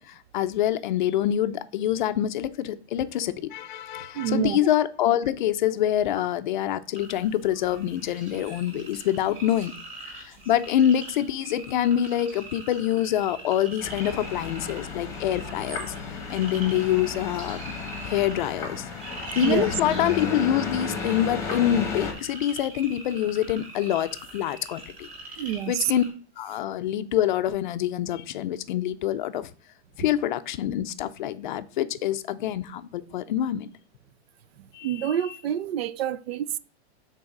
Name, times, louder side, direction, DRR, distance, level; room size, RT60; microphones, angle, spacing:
voice 1, 0.0-9.7 10.3-15.9 16.3-17.6 18.0-18.9 19.4-25.1 25.7-26.0 26.4-29.5 30.0-33.7 34.7-35.2, left 11 dB, 45° left, 0.5 m, -26 dB
voice 2, 4.1-4.6 19.4-19.7 25.4-25.9 34.8-36.6, right 10 dB, 65° right, 0.5 m, -27 dB
sound 1, 7.0-26.1, right 2 dB, 15° right, 1.9 m, -42 dB
sound 2, 13.8-22.1, left 4 dB, 10° left, 1.0 m, -33 dB
6.3 x 4.0 x 5.9 m
supercardioid pair, 175°, 33 cm